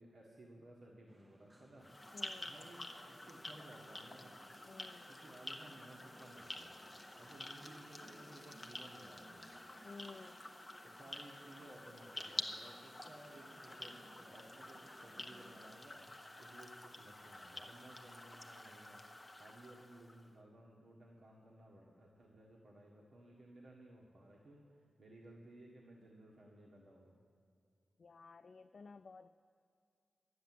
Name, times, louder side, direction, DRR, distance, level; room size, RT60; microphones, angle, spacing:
voice 1, 0.0-4.4 5.1-6.7 7.2-9.5 10.8-16.0 16.4-27.2, right 1 dB, 55° right, -3 dB, 1.6 m, -58 dB
sound 1, 1.1-15.8, right 1 dB, 10° right, 0.7 m, -62 dB
sound 2, 1.8-20.3, left 1 dB, 15° left, 1.0 m, -50 dB
voice 2, 2.1-2.6 4.7-5.1 9.8-10.4 28.0-29.3, left 4 dB, 55° left, 10 dB, 0.3 m, -54 dB
12.0 x 9.2 x 7.7 m, 2.4 s
wide cardioid pair, 100°, 0 cm